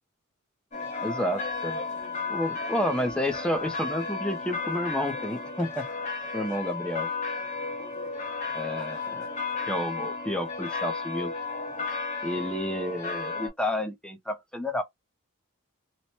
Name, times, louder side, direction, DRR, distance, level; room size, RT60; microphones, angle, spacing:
sound 1, 0.7-13.5, left 4 dB, 35° left, 1.0 m, -33 dB
voice 1, 1.0-1.8 2.3-5.9 6.3-7.1 8.5-9.3 9.7-11.3 12.2-14.8, left 1 dB, 5° left, 0.4 m, -30 dB
2.9 x 2.1 x 2.7 m
head